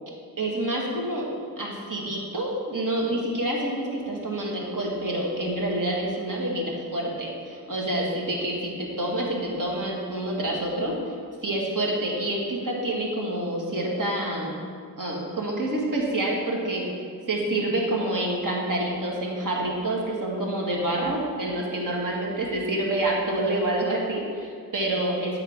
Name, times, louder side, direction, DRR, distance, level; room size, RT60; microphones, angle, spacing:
voice 1, 0.4-1.3 1.6-11.2 11.4-14.6 15.0-25.4, right 1 dB, 50° right, -2 dB, 1.8 m, -27 dB
8.8 x 3.9 x 5.0 m, 2.2 s
cardioid pair, 40°, 40 cm